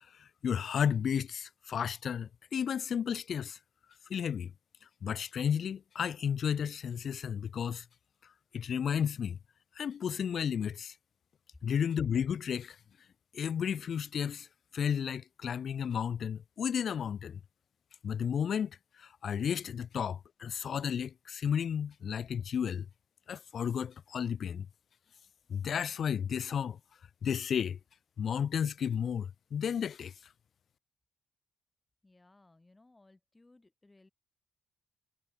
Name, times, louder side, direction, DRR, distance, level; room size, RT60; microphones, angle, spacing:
voice 1, 0.4-3.6 4.1-4.5 5.0-7.8 8.5-9.4 9.8-10.9 11.6-12.8 13.3-14.5 14.7-17.4 18.0-22.9 23.3-24.7 25.5-26.8 27.2-27.8 28.2-30.1, left 8 dB, 55° left, 0.5 m, -33 dB
voice 2, 32.0-34.1, left 2 dB, 15° left, 2.5 m, -62 dB
cardioid pair, 90°, 0 cm